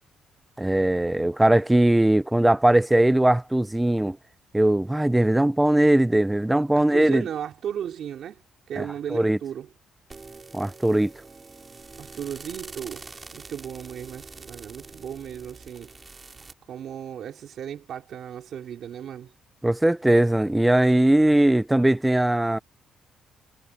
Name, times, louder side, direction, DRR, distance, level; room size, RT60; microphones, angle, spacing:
voice 1, 0.6-4.2 4.5-7.2 8.8-8.9 9.1-9.4 10.5-11.1 19.6-22.6, right 1 dB, 10° right, 0.8 m, -20 dB
voice 2, 6.7-8.4 8.7-9.7 12.0-15.9 16.7-19.3, right 9 dB, 65° right, 3.6 m, -35 dB
sound 1, 10.1-16.5, right 4 dB, 30° right, 3.5 m, -44 dB
cardioid pair, 90°, 0 cm